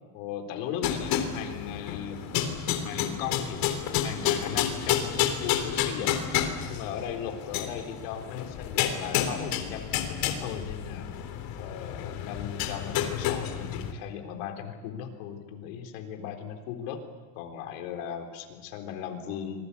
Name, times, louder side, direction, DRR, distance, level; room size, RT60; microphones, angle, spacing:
voice 1, 0.1-2.2 2.8-3.6 4.0-6.4 6.7-11.1 11.6-17.0 17.4-19.6, left 8 dB, 80° left, 4 dB, 4.0 m, -37 dB
sound 1, 0.8-13.9, left 9 dB, 60° left, 3.5 m, -30 dB
26.0 x 21.0 x 8.5 m, 1.5 s
supercardioid pair, 125°, 40 cm